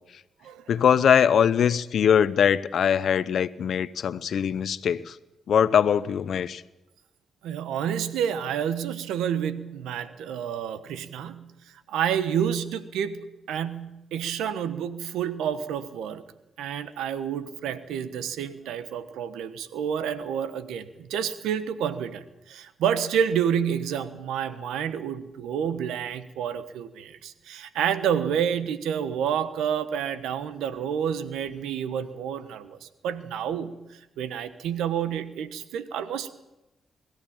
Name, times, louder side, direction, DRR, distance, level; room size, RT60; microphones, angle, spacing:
voice 1, 0.7-5.2 5.5-6.6, left 8 dB, 70° left, 16 dB, 0.8 m, -22 dB
voice 2, 7.4-11.5 11.9-16.2 16.6-33.8 34.2-36.3, right 8 dB, 85° right, 12 dB, 1.2 m, -29 dB
21.5 x 14.0 x 8.8 m, 0.98 s
supercardioid pair, 55°, 0 cm